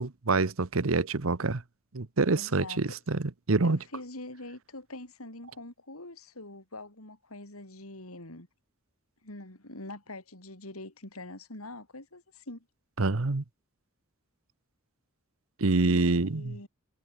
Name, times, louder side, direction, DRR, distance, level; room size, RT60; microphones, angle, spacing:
voice 1, 0.0-1.6 1.9-3.8 13.0-13.4 15.6-16.6, right 3 dB, 70° right, 1.0 m, -26 dB
voice 2, 2.3-3.0 3.6-8.5 9.2-12.7 15.8-16.7, left 2 dB, 90° left, 5.8 m, -44 dB
head